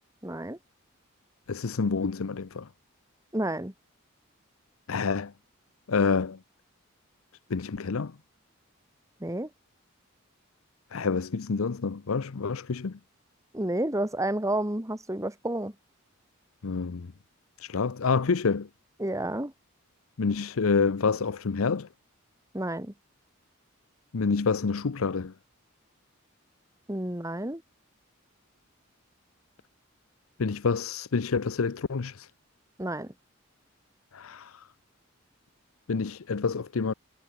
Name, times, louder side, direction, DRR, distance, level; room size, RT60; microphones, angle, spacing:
voice 1, 0.2-0.6 3.3-3.7 9.2-9.5 13.5-15.7 19.0-19.5 22.5-22.9 26.9-27.6 32.8-33.1, right 1 dB, 15° right, 2.3 m, -30 dB
voice 2, 1.5-2.7 4.9-5.3 5.9-6.4 7.5-8.1 10.9-13.0 16.6-17.1 17.6-18.7 20.2-21.9 24.1-25.3 30.4-32.3 34.1-34.6 35.9-36.9, left 4 dB, 85° left, 0.7 m, -28 dB
head